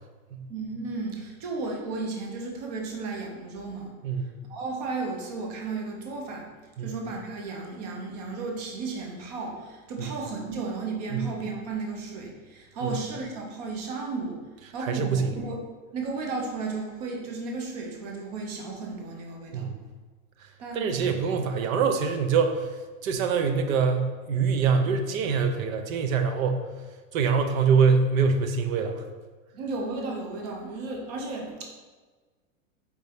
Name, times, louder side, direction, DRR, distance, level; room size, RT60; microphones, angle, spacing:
voice 1, 0.5-3.9 4.5-6.5 6.8-14.4 14.7-15.6 15.9-19.7 20.6-21.1 29.5-31.6, right 3 dB, 30° right, 0 dB, 0.5 m, -34 dB
voice 2, 14.8-15.3 19.5-19.8 20.7-22.7 23.0-26.7 27.1-29.1, right 5 dB, 75° right, 7 dB, 0.7 m, -24 dB
4.6 x 2.7 x 3.4 m, 1.4 s
supercardioid pair, 175°, 41 cm